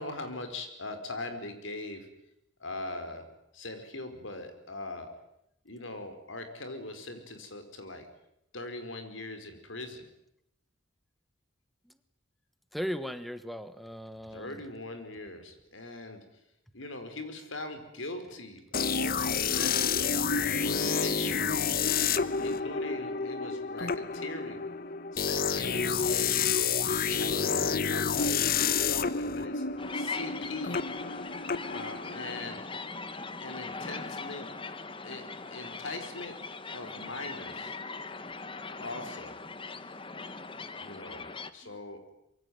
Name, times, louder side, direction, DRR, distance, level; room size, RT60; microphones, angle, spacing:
voice 1, 0.0-2.1 2.6-3.2 3.5-5.1 5.6-8.1 8.5-10.1 14.3-16.2 16.7-21.6 22.4-24.6 25.1-26.2 27.1-29.6 29.9-30.8 31.6-32.6 33.4-34.5 35.0-35.2 35.5-36.4 36.7-37.8 38.7-39.3 40.8-42.1, left 2 dB, 85° left, 8 dB, 4.9 m, -41 dB
voice 2, 12.7-14.6 41.6-41.8, equal, ahead, 12 dB, 1.3 m, -37 dB
sound 1, 18.7-32.5, left 6 dB, 50° left, 1.0 m, -29 dB
sound 2, 29.8-41.5, left 4 dB, 25° left, 1.3 m, -40 dB
25.0 x 23.0 x 9.6 m, 0.78 s
head